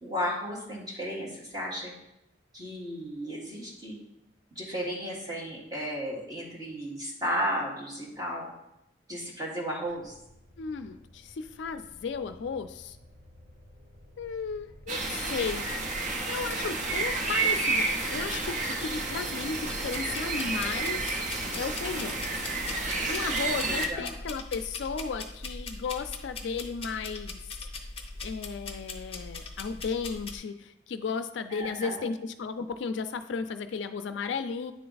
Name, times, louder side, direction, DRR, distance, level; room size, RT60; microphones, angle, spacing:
voice 1, 0.0-1.9 2.5-4.0 4.5-8.5 9.1-10.1 23.6-24.1 31.5-32.0, equal, 20° right, -4 dB, 1.5 m, -34 dB
sound 1, 9.8-22.5, equal, 60° right, 2.1 m, -52 dB
voice 2, 10.6-13.0 14.2-15.6 16.3-21.2 21.5-22.2 23.1-27.4 28.2-34.7, left 5 dB, 75° left, 10 dB, 0.4 m, -34 dB
sound 2, 14.9-23.9, right 3 dB, 40° right, 0.7 m, -30 dB
sound 3, 19.9-30.4, left 3 dB, 30° left, 0.6 m, -41 dB
9.3 x 3.4 x 3.9 m, 0.86 s
head